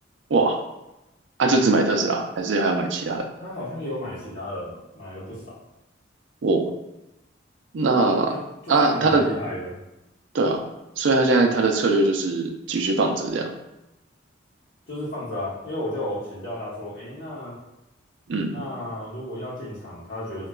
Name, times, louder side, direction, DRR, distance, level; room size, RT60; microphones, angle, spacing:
voice 1, 1.4-3.2 6.4-6.7 7.7-8.3 8.7-9.3 10.3-10.6 11.0-13.5 18.3-18.6, right 3 dB, 70° right, 3 dB, 0.4 m, -21 dB
voice 2, 3.4-5.6 8.3-9.8 14.9-17.6 18.5-20.5, left 1 dB, 50° left, -11 dB, 0.9 m, -33 dB
3.7 x 2.2 x 2.2 m, 0.92 s
head